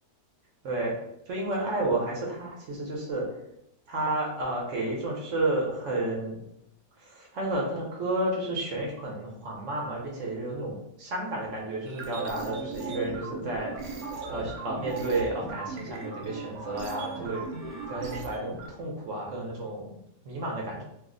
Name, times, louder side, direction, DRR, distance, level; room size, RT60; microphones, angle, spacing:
voice 1, 1.3-3.3 3.9-6.4 7.0-13.7 14.3-17.4 17.9-19.9 20.2-20.8, right 2 dB, 60° right, -2 dB, 0.9 m, -31 dB
sound 1, 11.9-18.7, right 4 dB, 85° right, 1.1 m, -38 dB
2.7 x 2.0 x 3.6 m, 0.80 s
omnidirectional pair, 1.5 m